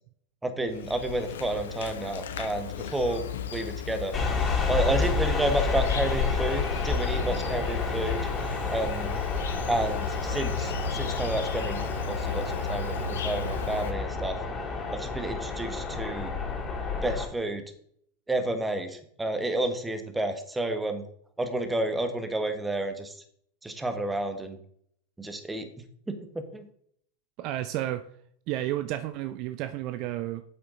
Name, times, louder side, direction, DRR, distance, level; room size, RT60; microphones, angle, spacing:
voice 1, 0.4-3.2 3.5-4.1 4.7-8.3 8.7-9.1 9.7-14.4 14.9-16.3 17.0-17.6 18.3-21.0 21.4-23.1 23.6-24.6 25.2-25.6 26.1-26.6, right 2 dB, 10° right, 8 dB, 1.6 m, -30 dB
Insect, 0.7-13.9, left 6 dB, 75° left, 0.9 m, -35 dB
sound 1, 4.1-17.3, left 4 dB, 25° left, 3.1 m, -30 dB
voice 2, 27.4-28.0 28.5-30.4, right 13 dB, 50° right, 11 dB, 0.6 m, -31 dB
8.9 x 7.9 x 3.9 m, 0.65 s
hypercardioid pair, 95°, 0 cm